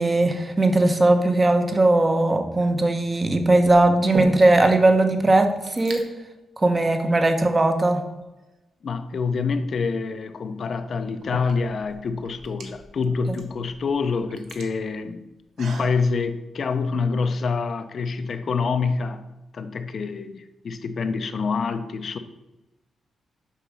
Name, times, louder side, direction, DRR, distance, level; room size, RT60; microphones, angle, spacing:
voice 1, 0.0-6.0 6.6-8.0, right 2 dB, 20° right, 6 dB, 0.9 m, -19 dB
sound 1, 2.4-2.9 3.7-4.7 5.0-5.1 5.3-6.0 6.8-7.0 7.6-8.5 10.2-10.3 11.0-16.0, right 2 dB, 80° right, 1.4 m, -37 dB
voice 2, 8.8-15.3 15.6-19.2 19.5-22.2, left 4 dB, 40° left, 10 dB, 0.6 m, -26 dB
6.9 x 6.1 x 6.1 m, 1.0 s
wide cardioid pair, 170°, 0 cm